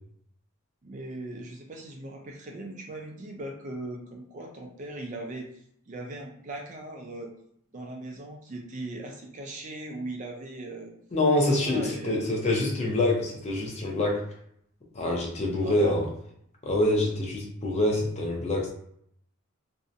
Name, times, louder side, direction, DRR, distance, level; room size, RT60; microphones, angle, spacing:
voice 1, 0.8-5.5 5.9-7.3 7.7-10.9 11.6-12.3 15.6-16.0, right 2 dB, 35° right, 1 dB, 0.4 m, -39 dB
voice 2, 11.1-14.3 14.9-16.1 16.6-18.7, left 1 dB, 30° left, -1 dB, 0.5 m, -25 dB
2.6 x 2.0 x 2.4 m, 0.69 s
head